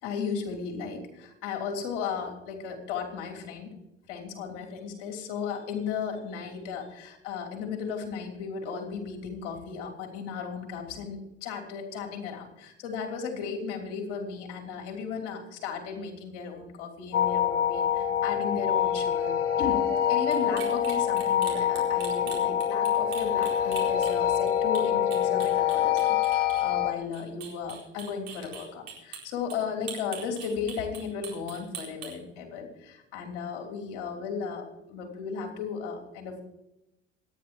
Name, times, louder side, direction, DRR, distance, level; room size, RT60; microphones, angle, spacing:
voice 1, 0.0-3.7 4.1-19.3 19.6-36.4, left 6 dB, 70° left, 2 dB, 3.3 m, -35 dB
sound 1, 17.1-26.9, left 9 dB, 85° left, 1.0 m, -25 dB
sound 2, 20.3-24.5 24.7-24.9 25.1-26.6 26.9-29.2 29.5-29.6 29.9-32.1, right 8 dB, 70° right, 4.4 m, -41 dB
26.5 x 9.9 x 3.0 m, 0.90 s
hypercardioid pair, 60°, 34 cm